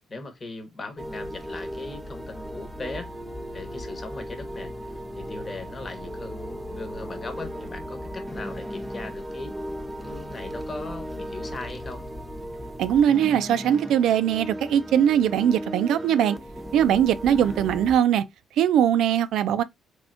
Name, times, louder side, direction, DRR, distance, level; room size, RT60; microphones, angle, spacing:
voice 1, 0.1-3.1 3.5-9.5 10.0-12.0 17.3-17.6, left 3 dB, 35° left, 1.1 m, -39 dB
sound 1, 1.0-17.9, equal, 10° right, 0.7 m, -36 dB
voice 2, 12.8-16.4 16.7-18.2 18.6-19.6, right 9 dB, 80° right, 0.4 m, -21 dB
3.5 x 3.4 x 2.5 m
cardioid pair, 90°, 0 cm